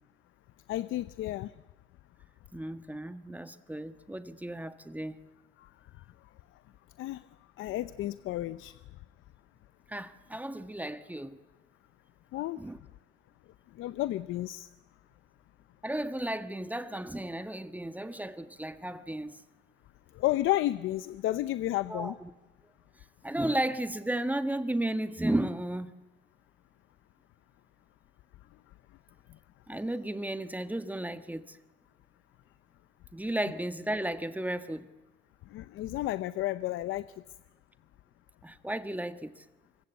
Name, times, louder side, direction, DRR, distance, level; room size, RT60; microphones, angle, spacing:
voice 1, 0.7-1.5 5.6-5.7 7.0-7.2 7.6-8.8 12.3-12.6 13.7-14.7 20.1-22.1 35.5-37.1, left 15 dB, 85° left, 0.7 m, -32 dB
voice 2, 2.5-5.2 9.9-11.4 12.6-12.8 15.8-19.4 21.9-22.3 23.2-25.9 29.7-31.6 33.1-34.9 38.4-39.4, right 1 dB, 10° right, 1.5 m, -34 dB
25.5 x 22.0 x 8.1 m
cardioid pair, 90°, 20 cm